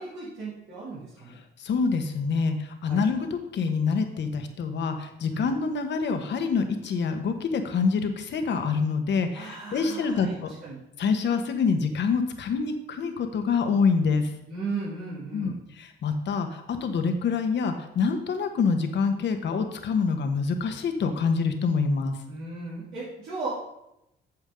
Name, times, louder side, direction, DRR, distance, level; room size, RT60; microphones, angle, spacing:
voice 1, 0.0-1.4 2.8-3.0 5.3-5.5 9.3-10.8 14.5-15.6 22.3-23.6, right 3 dB, 80° right, -10 dB, 2.9 m, -36 dB
voice 2, 1.6-10.5 11.0-14.3 15.3-22.2, left 5 dB, 65° left, 6 dB, 1.2 m, -26 dB
8.8 x 7.3 x 3.8 m, 0.85 s
cardioid pair, 90°, 20 cm